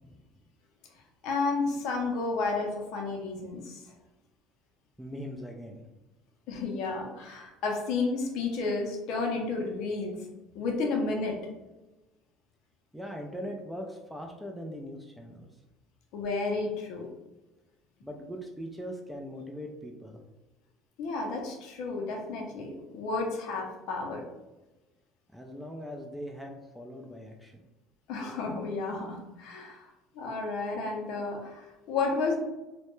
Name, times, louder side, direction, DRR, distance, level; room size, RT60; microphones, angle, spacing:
voice 1, 1.2-3.8 6.5-10.3 10.5-11.4 16.1-17.1 21.0-24.2 28.1-29.9 30.1-32.3, left 3 dB, 70° left, 0 dB, 0.5 m, -31 dB
voice 2, 5.0-5.8 12.9-15.5 18.0-20.2 25.3-27.6, equal, 5° right, 1 dB, 0.3 m, -40 dB
2.1 x 2.0 x 3.0 m, 1.0 s
supercardioid pair, 100°, 0 cm